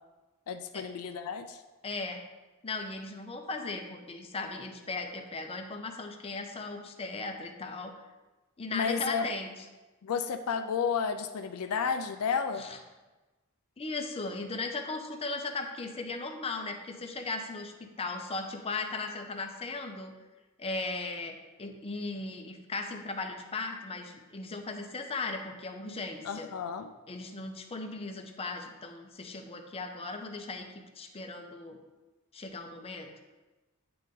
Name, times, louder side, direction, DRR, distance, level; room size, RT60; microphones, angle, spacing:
voice 1, 0.5-1.6 8.7-9.3 10.0-12.7 26.2-26.9, left 6 dB, 70° left, 7 dB, 0.4 m, -32 dB
voice 2, 1.8-2.2 2.6-7.9 8.6-9.5 12.6-12.8 13.8-20.1 20.6-26.5 27.1-31.8 32.3-33.1, left 3 dB, 25° left, 4 dB, 0.6 m, -37 dB
9.1 x 3.9 x 3.7 m, 1.2 s
head